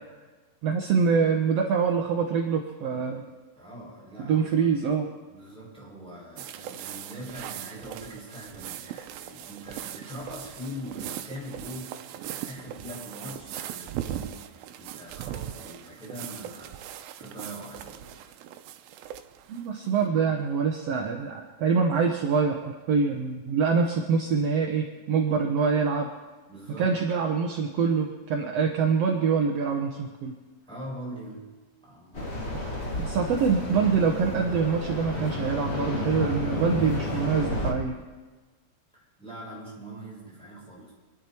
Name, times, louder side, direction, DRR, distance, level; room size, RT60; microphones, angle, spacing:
voice 1, 0.6-3.2 4.2-5.1 19.5-26.1 26.8-30.3 33.0-38.0, right 5 dB, 70° right, 2 dB, 1.5 m, -25 dB
voice 2, 3.5-4.7 5.3-18.2 26.5-27.0 30.7-31.5 31.9-33.2 38.9-40.9, equal, ahead, -6 dB, 6.6 m, -42 dB
sound 1, 6.4-20.0, right 11 dB, 90° right, 2.5 m, -39 dB
sound 2, 32.1-37.7, left 2 dB, 30° left, 1.3 m, -31 dB
26.5 x 11.0 x 4.5 m, 1.3 s
omnidirectional pair, 4.2 m